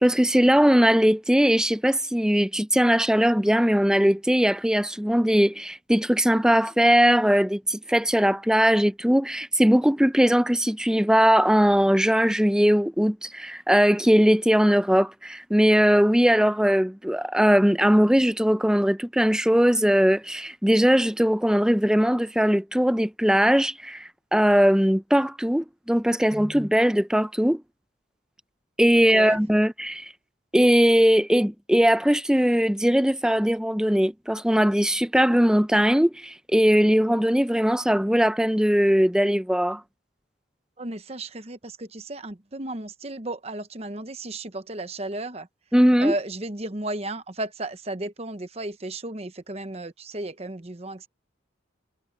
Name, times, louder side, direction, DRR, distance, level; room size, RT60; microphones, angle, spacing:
voice 1, 0.0-27.6 28.8-30.1 30.5-39.8 45.7-46.1, equal, 5° right, 0.5 m, -20 dB
voice 2, 40.8-45.5 46.0-51.1, right 2 dB, 30° right, 1.0 m, -34 dB
head